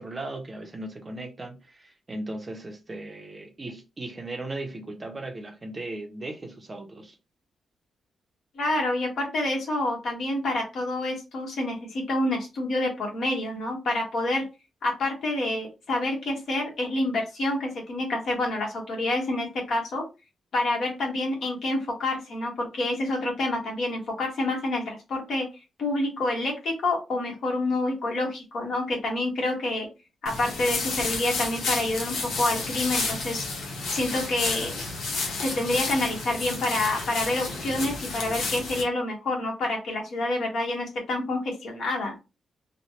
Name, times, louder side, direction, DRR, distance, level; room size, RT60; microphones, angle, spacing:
voice 1, 0.0-7.2, right 2 dB, 20° right, 0.6 m, -37 dB
voice 2, 8.5-14.4 14.8-20.0 20.5-25.4 25.8-29.9 30.2-34.8 35.4-42.2, left 2 dB, 60° left, 1.3 m, -28 dB
sound 1, 30.3-38.8, left 3 dB, 80° left, 0.9 m, -31 dB
3.1 x 2.1 x 2.8 m
wide cardioid pair, 155°, 0 cm